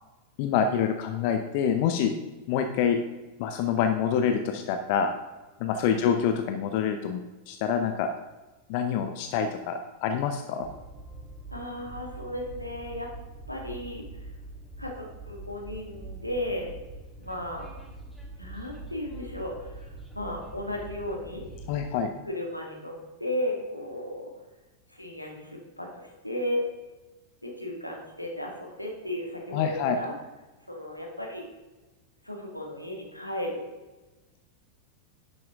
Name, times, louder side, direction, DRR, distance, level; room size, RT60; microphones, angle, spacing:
voice 1, 0.4-2.1 2.5-3.0 3.4-5.1 5.6-7.2 7.5-8.1 8.7-10.7 21.7-22.1 29.5-30.0, left 7 dB, 45° left, 6 dB, 0.7 m, -26 dB
Train, 10.6-21.9, right 2 dB, 5° left, 2.4 m, -44 dB
voice 2, 11.5-13.1 13.5-14.1 14.8-16.7 17.2-17.7 18.4-19.9 20.1-21.5 22.3-24.3 24.9-26.6 27.4-30.1 30.7-31.5 32.2-33.6, left 1 dB, 90° left, 0 dB, 2.0 m, -35 dB
11.0 x 7.7 x 3.6 m, 1.2 s
figure-of-eight pair, 90°, 0 cm